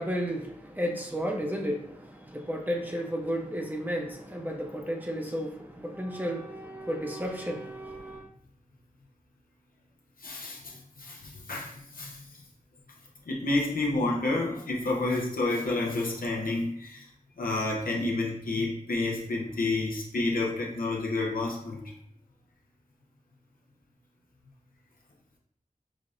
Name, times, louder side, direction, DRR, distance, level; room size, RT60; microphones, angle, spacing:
voice 1, 0.0-8.3, equal, 10° right, 1 dB, 0.7 m, -33 dB
voice 2, 10.2-12.4 13.3-17.1 17.4-21.9, left 2 dB, 85° left, -2 dB, 0.8 m, -30 dB
6.0 x 2.1 x 2.5 m, 0.66 s
wide cardioid pair, 50°, 14 cm